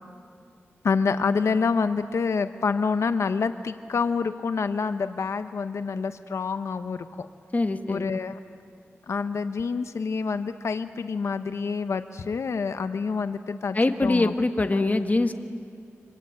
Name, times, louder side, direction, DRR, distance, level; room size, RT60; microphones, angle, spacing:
voice 1, 0.8-7.3 7.9-8.4 9.1-13.8 14.0-14.3 14.7-14.8, left 5 dB, 90° left, 10 dB, 0.8 m, -27 dB
voice 2, 7.5-8.1 13.7-15.3, left 2 dB, 35° left, 7 dB, 1.5 m, -23 dB
27.0 x 25.0 x 8.8 m, 2.3 s
wide cardioid pair, 95°, 5 cm